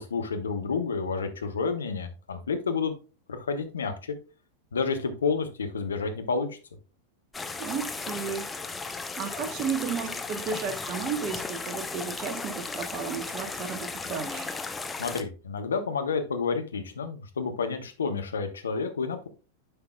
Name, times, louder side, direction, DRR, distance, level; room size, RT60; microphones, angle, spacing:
voice 1, 0.1-2.9 3.3-4.2 4.7-6.5 15.0-19.3, left 5 dB, 70° left, 1.2 m, -30 dB
sound 1, 7.3-15.2, left 4 dB, 10° left, 0.7 m, -35 dB
voice 2, 7.6-8.5 8.8-8.9 9.2-14.5, right 6 dB, 35° right, 1.0 m, -33 dB
10.0 x 5.9 x 2.3 m
figure-of-eight pair, 90°, 0 cm